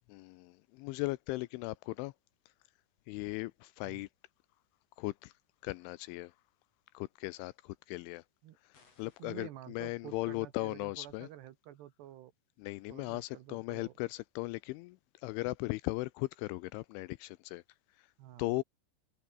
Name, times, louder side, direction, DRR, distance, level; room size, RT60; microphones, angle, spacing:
voice 1, 0.1-2.1 3.1-4.1 5.0-5.3 5.6-6.3 6.9-8.2 8.6-11.3 12.6-17.6 18.0-18.1 18.4-18.6, left 21 dB, 85° left, 2.8 m, -38 dB
sound 1, 8.7-9.5, left 5 dB, 35° left, 4.7 m, -66 dB
voice 2, 9.2-12.3 12.9-13.9 18.2-18.6, right 13 dB, 70° right, 3.0 m, -50 dB
omnidirectional pair, 5.8 m